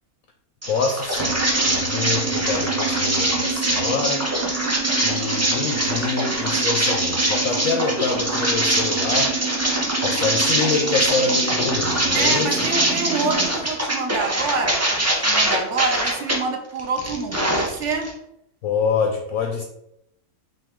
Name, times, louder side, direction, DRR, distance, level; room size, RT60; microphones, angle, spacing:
sound 1, 0.6-16.4 16.8-18.1, right 1 dB, 20° right, 0.4 m, -23 dB
voice 1, 0.7-4.3 5.0-9.3 10.0-12.6 18.6-19.6, left 5 dB, 70° left, 3 dB, 0.9 m, -26 dB
sound 2, 1.2-13.5, right 7 dB, 75° right, 0.6 m, -30 dB
voice 2, 12.1-18.1, right 4 dB, 60° right, 3 dB, 0.9 m, -27 dB
5.4 x 2.6 x 3.6 m, 0.79 s
omnidirectional pair, 1.7 m